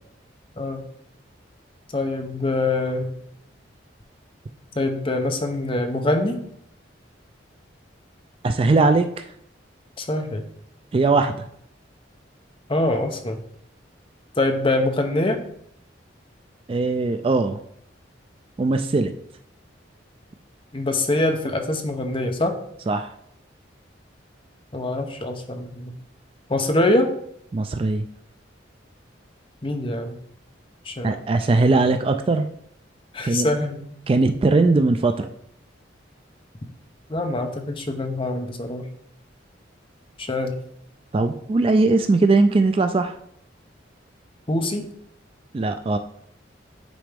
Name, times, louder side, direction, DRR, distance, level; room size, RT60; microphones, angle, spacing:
voice 1, 0.6-0.9 1.9-3.1 4.8-6.4 10.0-10.4 12.7-13.4 14.4-15.4 20.7-22.5 24.7-26.0 26.5-27.1 29.6-30.2 30.8-31.2 33.1-33.8 37.1-38.9 40.2-40.6 44.5-44.8, left 2 dB, 30° left, 5 dB, 0.7 m, -24 dB
voice 2, 8.4-9.2 10.9-11.4 16.7-17.6 18.6-19.1 22.9-23.1 27.5-28.0 31.0-32.5 33.2-33.5 34.1-35.3 41.1-43.2 45.5-46.0, right 3 dB, 30° right, 8 dB, 0.3 m, -20 dB
9.2 x 4.1 x 3.4 m, 0.69 s
head